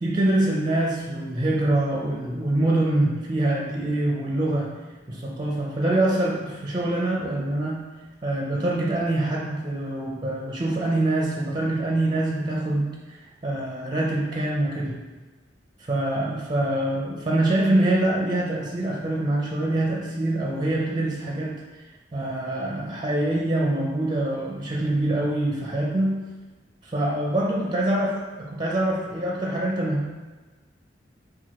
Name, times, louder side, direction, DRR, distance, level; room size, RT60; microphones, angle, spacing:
voice 1, 0.0-4.7 5.1-7.9 8.2-15.0 15.9-21.8 22.1-26.3 26.8-30.1, right 1 dB, 25° right, -2 dB, 0.5 m, -25 dB
4.6 x 2.2 x 4.2 m, 1.3 s
head